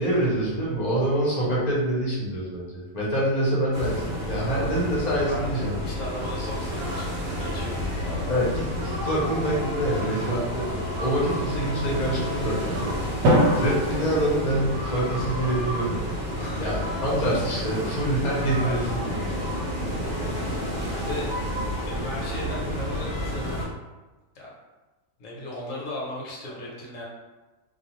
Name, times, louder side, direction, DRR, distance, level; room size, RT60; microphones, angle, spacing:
voice 1, 0.0-5.8 8.3-12.9 13.5-16.1 16.6-19.3, right 1 dB, 40° left, -5 dB, 0.7 m, -26 dB
sound 1, 3.7-23.6, equal, 45° right, 0.6 m, -30 dB
voice 2, 5.8-8.5 9.9-10.3 16.4-16.8 18.5-19.0 20.6-21.4 21.8-23.7 24.3-24.5 25.2-27.0, left 1 dB, 70° left, -4 dB, 1.0 m, -37 dB
Drum, 13.2-15.3, equal, 80° right, 1.0 m, -24 dB
2.3 x 2.3 x 2.9 m, 1.2 s
omnidirectional pair, 1.4 m